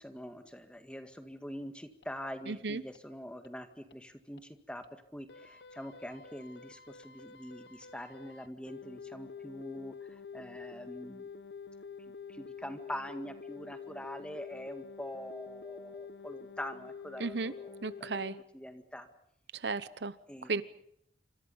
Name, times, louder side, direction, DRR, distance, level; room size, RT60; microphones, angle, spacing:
voice 1, 0.0-4.8 5.1-11.3 12.3-18.2 18.5-19.1 20.3-20.6, equal, 5° left, 7 dB, 1.9 m, -44 dB
sound 1, 2.0-2.1 2.5-2.6 2.9-3.0 3.4-3.5 3.9-4.0 4.4-4.5 4.8-4.9 5.3-18.4, left 5 dB, 70° left, 1.1 m, -48 dB
voice 2, 2.5-2.8 17.2-17.5 17.8-18.4 19.5-20.1 20.5-20.6, right 4 dB, 75° right, 15 dB, 0.9 m, -34 dB
27.5 x 26.0 x 5.6 m, 0.72 s
head